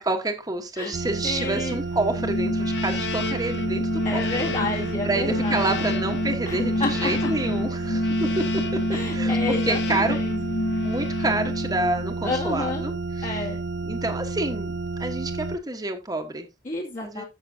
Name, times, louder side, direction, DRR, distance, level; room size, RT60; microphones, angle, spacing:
voice 1, 0.0-4.2 5.0-8.6 9.1-10.2 10.8-13.4 13.8-14.7 15.0-16.5 17.0-17.3, right 2 dB, 20° right, 1.3 m, -28 dB
sound 1, 0.9-15.6, right 3 dB, 70° right, 0.6 m, -31 dB
voice 2, 1.2-1.8 4.0-5.9 6.5-7.3 8.9-10.4 12.2-12.9 13.2-13.6 16.6-17.3, left 2 dB, 45° left, 2.4 m, -30 dB
sound 2, 2.2-12.1, left 1 dB, 85° left, 1.2 m, -28 dB
13.5 x 6.3 x 2.8 m
head